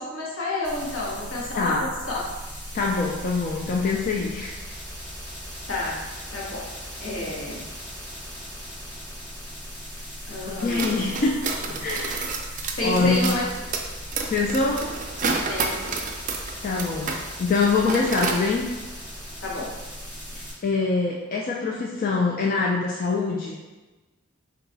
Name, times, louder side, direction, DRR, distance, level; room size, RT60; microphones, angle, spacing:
voice 1, 0.0-2.2 5.7-6.0 6.3-6.7 7.0-7.6 10.2-11.3 11.7-11.8 12.8-13.5 15.5-16.0 19.4-19.7, left 2 dB, 80° left, -5 dB, 1.2 m, -30 dB
sound 1, 0.6-20.5, equal, 10° left, 1.0 m, -38 dB
voice 2, 1.5-1.9 2.7-4.6 10.6-11.4 11.8-13.3 14.3-14.8 16.6-17.1 17.4-18.7 20.3-23.6, left 4 dB, 45° left, -2 dB, 0.3 m, -24 dB
sound 2, 10.6-17.2 17.5-18.4, right 4 dB, 40° right, 0.4 m, -30 dB
3.8 x 2.3 x 3.9 m, 1.2 s
head